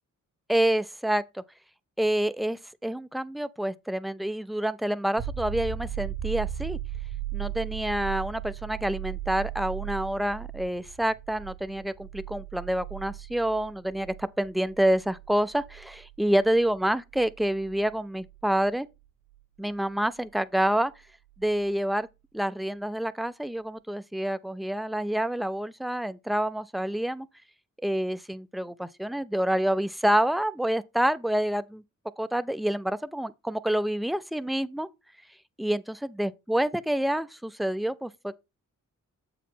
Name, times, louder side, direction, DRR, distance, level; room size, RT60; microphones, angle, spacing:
voice 1, 0.5-1.4 2.0-6.8 7.3-18.9 19.6-20.9 21.4-22.1 22.3-27.3 27.8-31.8 32.2-34.9 35.6-38.4, right 1 dB, ahead, 0.3 m, -28 dB
sound 1, 5.2-18.7 21.4-21.5, right 11 dB, 85° right, 1.6 m, -37 dB
8.0 x 4.8 x 3.7 m
wide cardioid pair, 155°, 31 cm